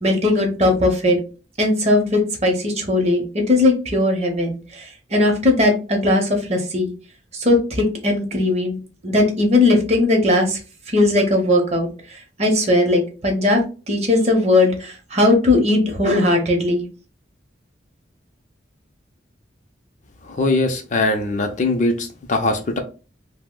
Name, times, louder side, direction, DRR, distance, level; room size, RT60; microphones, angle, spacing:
voice 1, 0.0-1.2 1.6-6.9 7.3-10.6 10.9-11.9 12.4-13.6 13.9-16.9, left 2 dB, 35° right, 2 dB, 0.7 m, -18 dB
voice 2, 20.2-22.8, left 2 dB, 40° left, 5 dB, 0.4 m, -21 dB
2.7 x 2.0 x 3.6 m, 0.34 s
head